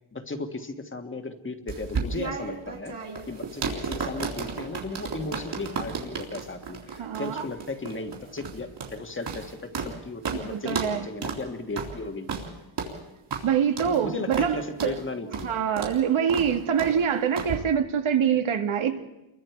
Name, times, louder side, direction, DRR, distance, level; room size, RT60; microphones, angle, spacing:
voice 1, 0.1-3.0 3.3-12.3 13.8-15.5, left 3 dB, 25° left, 1.6 m, -35 dB
sound 1, 1.7-9.9 10.2-10.4 10.7-10.9 11.2-11.4 11.8-11.9 12.3-12.5 12.8-12.9 13.3-13.4 13.8-14.0 14.3-14.5 14.8-14.9 15.3-15.5 15.8-16.0 16.3-16.5 16.8-17.0 17.4-17.6, right 5 dB, 60° right, 3.9 m, -33 dB
voice 2, 7.0-7.4 10.3-11.1 13.4-14.9 15.4-19.0, right 8 dB, 80° right, 2.0 m, -25 dB
29.5 x 23.0 x 4.7 m
wide cardioid pair, 165°, 48 cm